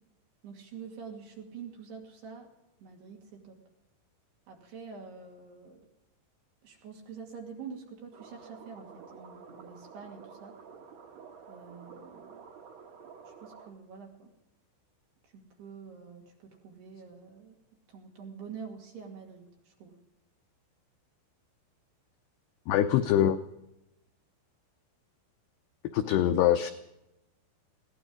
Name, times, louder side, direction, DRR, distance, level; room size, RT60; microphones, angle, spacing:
voice 1, 0.4-2.5 2.8-3.6 4.5-5.9 6.6-10.5 11.5-12.4 13.3-14.3 15.3-17.6 17.9-20.0, right 6 dB, 60° right, 1 dB, 4.2 m, -46 dB
sound 1, 8.1-13.7, right 6 dB, 80° right, 1.5 m, -50 dB
voice 2, 22.7-23.4 25.9-26.7, left 11 dB, 85° left, 8 dB, 2.4 m, -24 dB
21.5 x 17.0 x 3.8 m, 0.88 s
omnidirectional pair, 5.6 m